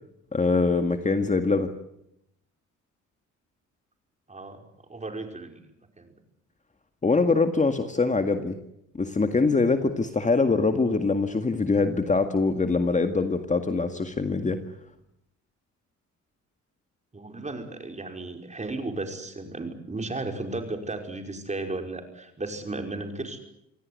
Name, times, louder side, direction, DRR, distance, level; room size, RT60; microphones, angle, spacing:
voice 1, 0.3-1.7 7.0-8.6 8.9-14.6, left 3 dB, 25° left, 7 dB, 2.0 m, -23 dB
voice 2, 4.3-4.6 4.9-5.7 6.0-6.1 17.1-23.4, right 2 dB, 25° right, 5 dB, 5.3 m, -34 dB
26.5 x 17.0 x 9.7 m, 0.80 s
cardioid pair, 90°, 30 cm